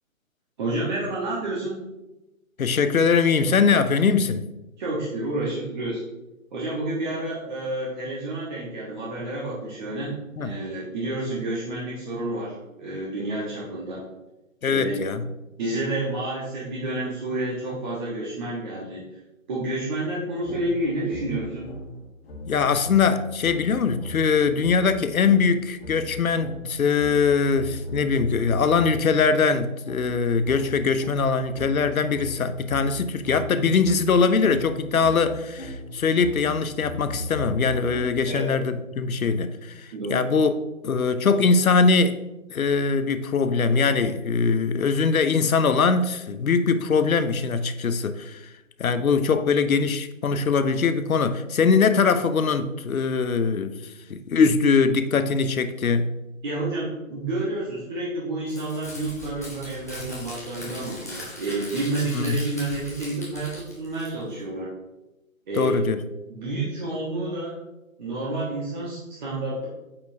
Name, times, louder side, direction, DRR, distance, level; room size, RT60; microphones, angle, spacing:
voice 1, 0.6-1.8 4.8-6.0 6.5-14.0 14.7-15.2 15.6-19.0 19.5-21.7 38.2-38.5 39.9-40.3 56.4-64.7 65.5-65.8 66.3-67.6 68.0-69.7, right 2 dB, 35° right, 1.2 m, -29 dB
voice 2, 2.6-4.5 10.4-10.5 14.6-15.2 22.5-40.5 40.8-42.2 42.5-48.4 48.8-53.8 54.1-56.2 62.1-62.4 65.5-66.0, left 5 dB, 80° left, 0.7 m, -22 dB
sound 1, 20.4-29.2 29.8-38.5, left 1 dB, 45° left, 1.5 m, -38 dB
Crumpling crinkling, 58.5-64.4, left 1 dB, 15° left, 0.5 m, -39 dB
8.5 x 4.3 x 2.7 m
figure-of-eight pair, 140°, 41 cm